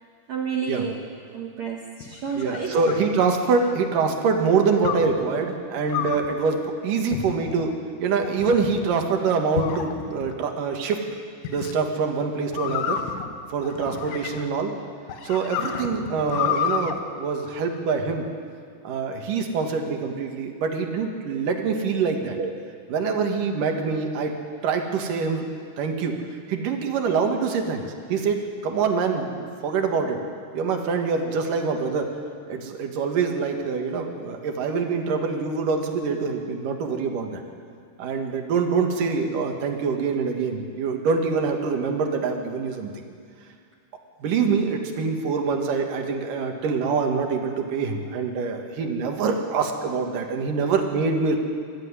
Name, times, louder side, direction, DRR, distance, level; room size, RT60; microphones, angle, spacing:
voice 1, 0.3-3.1 22.4-22.5 31.7-31.8, right 6 dB, 85° right, 0 dB, 1.5 m, -31 dB
sound 1, 2.0-3.8 4.9-5.2 5.9-6.3 7.1-7.6 8.2-8.9 9.6-10.3 11.5-11.8 12.5-14.6 15.1-17.0, left 8 dB, 80° left, 3.3 m, -30 dB
voice 2, 2.4-7.7 8.0-11.0 11.5-13.0 13.5-14.7 15.2-18.2 18.8-22.4 22.9-24.4 24.6-25.5 25.8-26.2 26.5-29.3 29.6-30.2 30.5-32.1 32.5-37.4 38.0-42.9 44.2-51.4, right 5 dB, 55° right, 3 dB, 2.8 m, -25 dB
23.0 x 14.5 x 9.8 m, 2.2 s
omnidirectional pair, 5.3 m